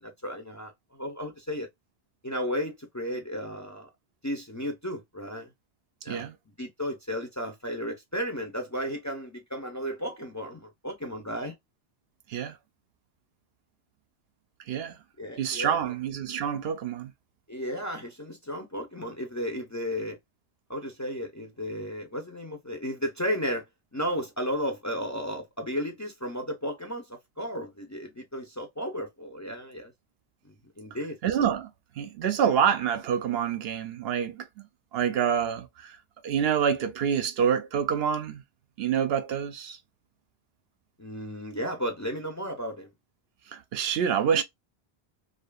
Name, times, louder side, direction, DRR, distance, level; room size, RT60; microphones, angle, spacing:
voice 1, 0.0-1.7 2.2-3.9 4.2-5.5 6.0-11.5 15.2-15.9 17.5-20.2 20.7-23.6 23.9-29.9 30.4-31.2 41.0-42.9, equal, 20° left, 0.5 m, -34 dB
voice 2, 15.4-17.1 31.2-31.7 32.0-34.5 34.9-36.0 36.2-38.4 38.8-39.8 43.5-44.4, right 8 dB, 75° right, 0.8 m, -27 dB
2.7 x 2.4 x 2.2 m
omnidirectional pair, 1.1 m